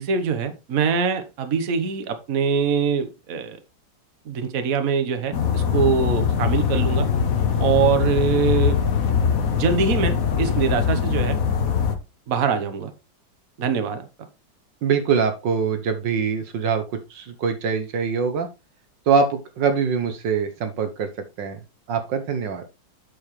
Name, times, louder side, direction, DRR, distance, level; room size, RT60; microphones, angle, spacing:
voice 1, 0.0-3.6 4.2-7.1 7.6-8.8 9.5-11.3 12.3-12.9 13.6-14.1, right 6 dB, 50° right, 8 dB, 1.4 m, -23 dB
sound 1, 5.3-11.9, left 7 dB, 55° left, 1.4 m, -22 dB
voice 2, 14.8-18.5 19.1-21.1 21.4-21.6 21.9-22.6, right 6 dB, 75° right, 8 dB, 1.7 m, -23 dB
8.7 x 6.9 x 3.2 m, 0.27 s
omnidirectional pair, 2.0 m